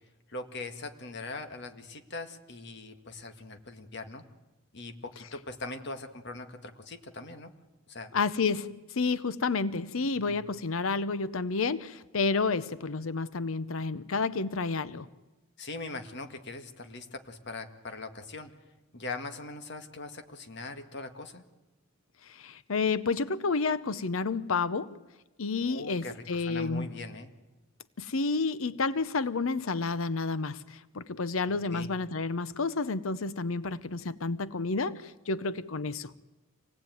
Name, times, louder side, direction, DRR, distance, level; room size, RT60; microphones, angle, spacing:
voice 1, 0.3-4.2 4.7-7.5 7.9-8.1 10.1-10.4 15.6-18.5 18.9-21.4 25.7-27.3 31.6-31.9, left 2 dB, 55° left, 7 dB, 1.9 m, -41 dB
voice 2, 8.1-15.1 22.3-25.0 25.4-26.9 28.0-36.1, left 4 dB, 75° left, 16 dB, 0.7 m, -30 dB
26.0 x 18.5 x 9.2 m, 1.1 s
head